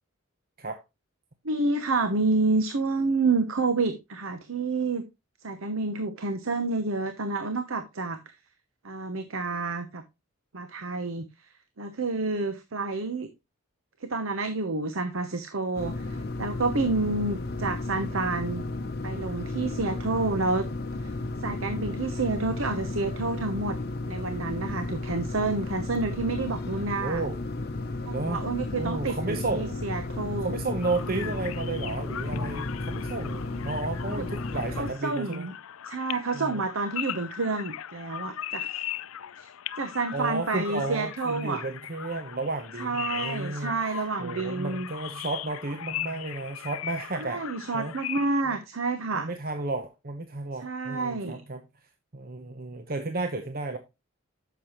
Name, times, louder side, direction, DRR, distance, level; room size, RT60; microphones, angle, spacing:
voice 1, 1.4-5.0 5.4-8.2 8.8-10.0 10.5-11.2 11.8-13.3 14.0-18.7 19.0-20.7 21.0-21.1 21.4-23.8 24.1-27.2 28.0-30.6 31.1-31.3 31.6-31.9 34.1-34.2 34.8-35.5 35.9-38.8 39.4-39.5 39.8-41.6 42.8-44.9 47.2-49.3 50.6-51.4, right 3 dB, 75° right, 0.9 m, -29 dB
sound 1, 15.7-34.9, left 2 dB, 50° left, 0.8 m, -33 dB
voice 2, 27.0-27.4 28.1-28.4 28.8-29.8 30.4-35.5 36.3-36.6 40.1-43.8 44.2-47.5 47.7-47.9 48.4-48.6 49.1-51.6 52.1-53.8, right 3 dB, 45° right, 0.8 m, -33 dB
sound 2, 30.8-48.4, left 11 dB, 80° left, 0.5 m, -39 dB
9.7 x 6.9 x 3.0 m
head